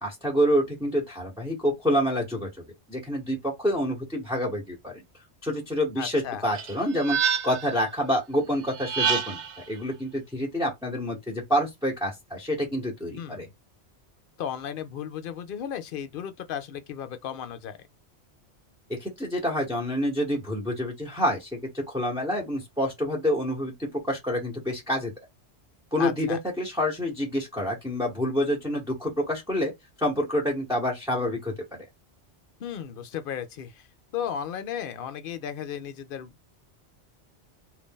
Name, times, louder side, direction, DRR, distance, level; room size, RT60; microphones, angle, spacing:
voice 1, 0.0-2.5 2.9-5.0 5.4-9.4 9.7-13.5 18.9-25.1 25.9-29.7 30.0-31.8, equal, 5° right, 0.8 m, -27 dB
voice 2, 6.0-6.4 13.2-13.5 14.4-17.8 26.0-26.4 32.6-33.9 34.1-36.3, left 9 dB, 60° left, 0.7 m, -35 dB
sound 1, 6.5-7.8 8.7-9.6, right 7 dB, 80° right, 0.9 m, -27 dB
2.6 x 2.5 x 3.6 m
omnidirectional pair, 1.2 m